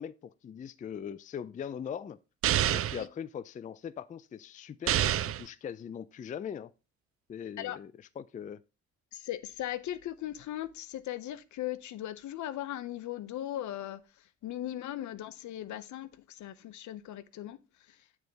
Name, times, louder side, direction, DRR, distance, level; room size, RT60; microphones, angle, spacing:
voice 1, 0.0-2.2 2.7-6.7 7.3-8.6, left 8 dB, 25° left, 0.3 m, -41 dB
sound 1, 2.4-3.0 4.9-5.5, right 12 dB, 50° right, 0.4 m, -27 dB
voice 2, 9.1-14.0 14.4-17.6, left 13 dB, 70° left, 0.7 m, -38 dB
9.4 x 3.5 x 3.9 m
cardioid pair, 90°, 30 cm